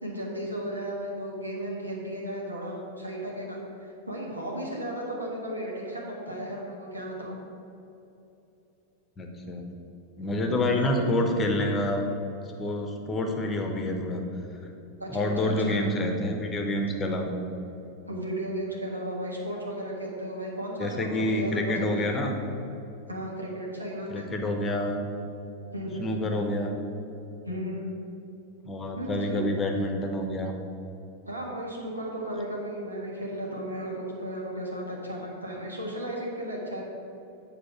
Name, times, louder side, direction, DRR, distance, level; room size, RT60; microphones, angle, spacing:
voice 1, 0.0-7.4 10.7-10.9 15.0-15.8 18.1-22.2 23.1-24.3 25.7-26.1 27.4-27.9 28.9-29.4 31.2-36.8, right 1 dB, 80° right, -2 dB, 1.4 m, -35 dB
voice 2, 9.2-9.7 10.2-12.0 12.6-14.2 15.1-17.3 20.8-22.4 24.1-25.1 26.0-26.8 28.7-30.5, left 1 dB, 20° left, 3 dB, 1.0 m, -27 dB
7.9 x 4.2 x 5.6 m, 2.8 s
figure-of-eight pair, 90°, 0 cm